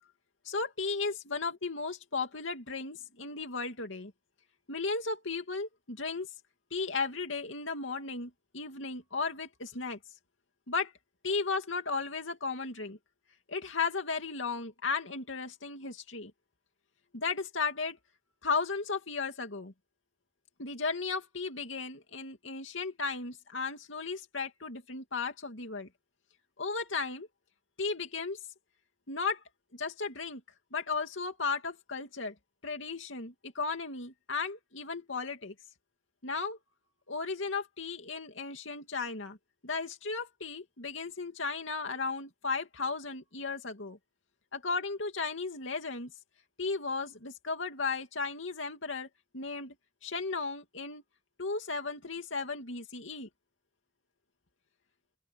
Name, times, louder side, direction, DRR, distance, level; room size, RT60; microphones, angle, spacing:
voice 1, 0.4-4.1 4.7-6.3 6.7-10.0 10.7-10.9 11.2-13.0 13.5-16.3 17.1-18.0 18.4-19.7 20.6-25.9 26.6-27.3 27.8-28.4 29.1-29.4 29.7-30.4 30.7-32.3 32.6-35.5 36.2-36.6 37.1-39.4 39.6-44.0 44.5-46.1 46.6-49.1 49.3-49.7 50.0-51.0 51.4-53.3, left 4 dB, 80° left, 2.5 m, -35 dB
open air
head